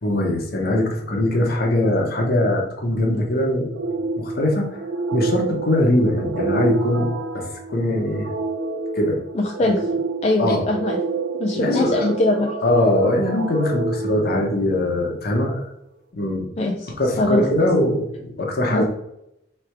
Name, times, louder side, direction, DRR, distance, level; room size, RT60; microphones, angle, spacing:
voice 1, 0.0-3.8 4.2-4.8 5.1-8.3 8.9-9.2 10.4-10.6 11.5-12.1 12.6-15.7 16.1-16.5 17.0-18.8, left 1 dB, 55° left, 1 dB, 1.0 m, -21 dB
sound 1, 3.7-15.1, right 3 dB, 85° right, 0.8 m, -28 dB
voice 2, 9.3-9.9 10.2-11.0 11.4-12.5 16.6-16.9 17.2-17.4 18.7-18.8, left 2 dB, 35° left, 0 dB, 0.4 m, -21 dB
3.4 x 3.3 x 4.5 m, 0.80 s
head